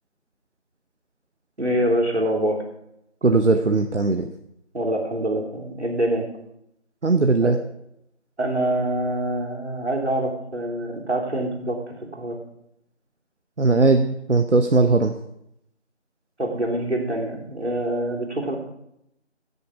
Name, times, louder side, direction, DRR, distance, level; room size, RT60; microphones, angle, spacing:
voice 1, 1.6-2.6 4.7-6.3 7.4-7.5 8.4-12.4 16.4-18.6, right 1 dB, 70° right, 0 dB, 3.1 m, -25 dB
voice 2, 3.2-4.3 7.0-7.6 13.6-15.1, right 3 dB, 85° right, 7 dB, 1.0 m, -19 dB
16.5 x 6.8 x 5.0 m, 0.79 s
figure-of-eight pair, 175°, 35 cm